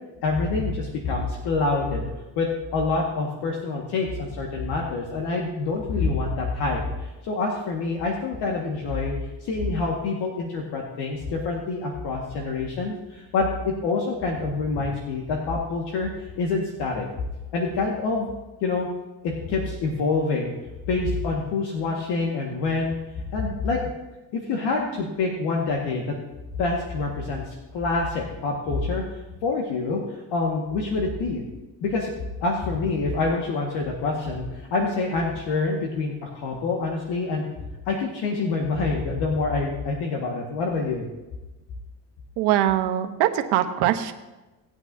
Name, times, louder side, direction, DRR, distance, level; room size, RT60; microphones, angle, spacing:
voice 1, 0.2-9.1 9.4-17.1 17.5-18.3 18.6-18.9 19.2-20.6 20.9-23.0 23.3-23.8 24.3-26.2 26.6-31.4 31.8-32.1 32.4-37.5 37.9-41.1, left 3 dB, 80° left, -1 dB, 1.8 m, -26 dB
voice 2, 42.4-44.1, right 12 dB, 90° right, 7 dB, 1.1 m, -22 dB
18.5 x 9.0 x 2.7 m, 1.1 s
cardioid pair, 110°, 40 cm